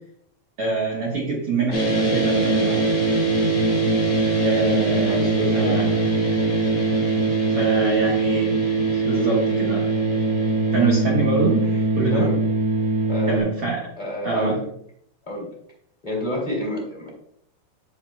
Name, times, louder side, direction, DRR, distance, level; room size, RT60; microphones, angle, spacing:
voice 1, 0.6-2.9 4.4-5.2 5.5-6.1 7.5-8.5 8.9-9.9 10.7-11.7 12.0-12.3 13.3-13.9 14.2-14.6, right 3 dB, 75° right, -4 dB, 1.3 m, -24 dB
sound 1, 1.7-13.4, right 2 dB, 45° left, 2.2 m, -21 dB
voice 2, 5.0-6.0 6.3-6.4 11.7-11.8 12.1-12.4 13.1-13.5 14.0-14.6 15.3-15.5 16.0-17.1, left 1 dB, 15° left, -3 dB, 1.8 m, -29 dB
10.5 x 6.9 x 2.3 m, 0.69 s
omnidirectional pair, 4.9 m